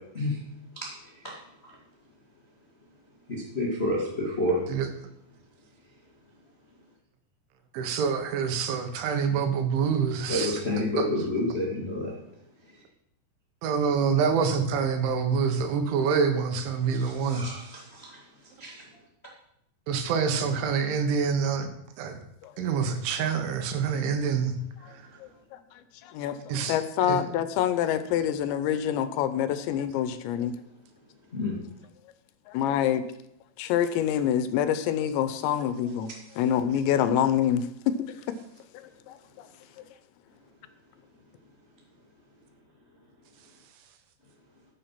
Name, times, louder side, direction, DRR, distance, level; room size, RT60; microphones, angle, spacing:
voice 1, 0.7-1.3 1.6-1.7 3.3-4.6 10.3-12.1 16.9-18.2 18.6-18.8 31.3-31.6, left 1 dB, 55° left, 0.6 m, -29 dB
voice 2, 7.7-10.6 11.0-11.1 13.6-17.5 19.9-21.7 22.0-22.2 22.6-24.5 24.8-25.0 26.5-26.8 27.1-27.2, right 6 dB, 90° right, 3.7 m, -26 dB
voice 3, 25.2-30.6 32.5-33.0 33.6-38.2 38.7-39.5 39.8-39.9, left 10 dB, 80° left, 2.9 m, -27 dB
13.5 x 7.5 x 5.8 m
omnidirectional pair, 5.3 m